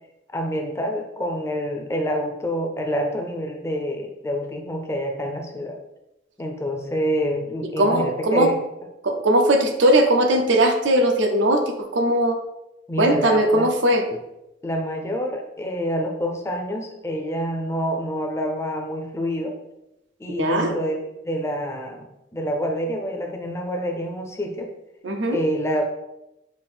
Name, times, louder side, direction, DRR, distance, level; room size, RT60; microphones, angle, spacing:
voice 1, 0.3-5.8 6.4-8.6 12.9-13.7 14.1-14.2 14.6-19.5 20.2-21.0 21.2-24.7 25.3-25.8, equal, 15° left, 2 dB, 0.5 m, -27 dB
voice 2, 7.8-8.5 9.0-12.4 13.0-14.0 20.4-20.7 25.0-25.4, right 1 dB, 85° right, 5 dB, 0.6 m, -19 dB
5.3 x 2.6 x 3.5 m, 0.89 s
head